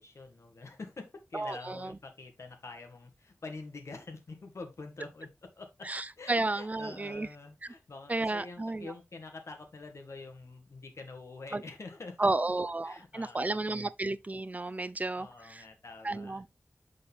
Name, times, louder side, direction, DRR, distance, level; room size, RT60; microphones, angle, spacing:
voice 1, 0.0-12.3 12.8-13.9 15.1-16.4, left 3 dB, 80° left, 1.7 m, -46 dB
voice 2, 1.3-1.9 5.8-7.3 8.1-8.9 11.5-11.6 12.2-15.6 16.0-16.5, right 2 dB, 35° right, 0.5 m, -32 dB
6.7 x 5.3 x 3.4 m
wide cardioid pair, 65°, 5 cm